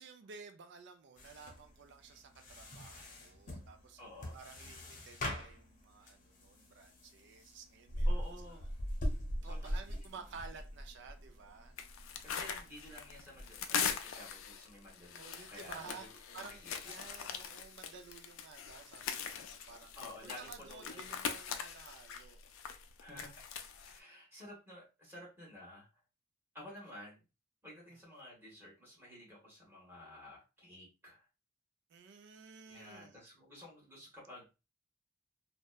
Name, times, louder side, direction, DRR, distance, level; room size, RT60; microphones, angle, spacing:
voice 1, 0.0-4.0 4.3-8.1 8.5-8.7 9.3-11.8 15.2-16.1 16.3-19.9 20.2-22.4 27.9-28.0 31.9-33.3, right 5 dB, 60° right, 0.4 m, -53 dB
sound 1, 1.2-13.7, equal, 45° left, 0.7 m, -42 dB
voice 2, 4.0-4.4 8.1-8.7 9.4-10.0 12.2-16.9 19.9-21.2 23.0-23.3 23.9-25.9 26.5-27.2 27.6-31.3 32.7-34.5, left 1 dB, 10° right, 1.2 m, -52 dB
sound 2, 11.8-24.0, left 7 dB, 85° left, 0.4 m, -42 dB
2.7 x 2.1 x 2.2 m
head